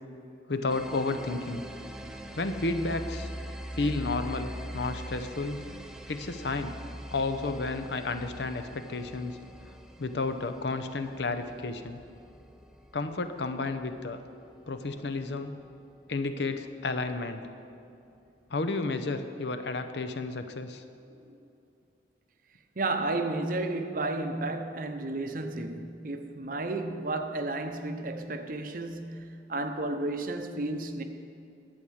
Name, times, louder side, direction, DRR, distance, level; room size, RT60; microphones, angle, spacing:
voice 1, 0.5-1.6 2.3-3.3 3.7-5.7 6.1-6.8 7.1-9.4 10.0-12.0 12.9-14.2 14.7-15.6 16.1-17.4 18.5-20.8, left 3 dB, 70° left, 0.7 m, -32 dB
sound 1, 0.7-16.1, equal, 5° right, 0.5 m, -43 dB
voice 2, 22.8-31.0, right 2 dB, 50° right, 0.7 m, -32 dB
11.5 x 8.5 x 6.3 m
head